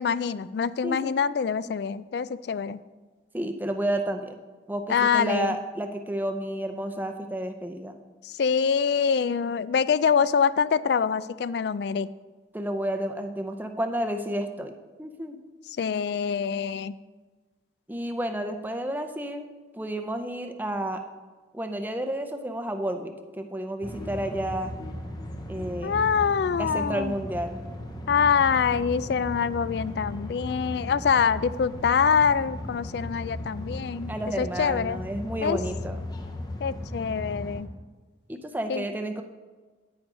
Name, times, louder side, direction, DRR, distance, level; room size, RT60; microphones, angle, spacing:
voice 1, 0.0-2.8 4.9-5.5 8.2-12.1 15.8-17.0 25.8-27.1 28.1-34.1 34.4-35.0 35.4-35.6 36.6-37.7 38.7-38.8, left 6 dB, 60° left, 17 dB, 0.3 m, -25 dB
voice 2, 0.8-1.2 3.3-4.4 4.7-8.0 12.5-15.4 17.9-19.5 19.7-21.0 21.5-24.8 25.5-26.1 26.6-27.6 34.1-36.0 38.3-39.2, right 1 dB, 10° right, 6 dB, 0.6 m, -31 dB
sound 1, 23.8-37.6, left 1 dB, 20° left, 0.8 m, -37 dB
9.6 x 9.6 x 3.8 m, 1.3 s
head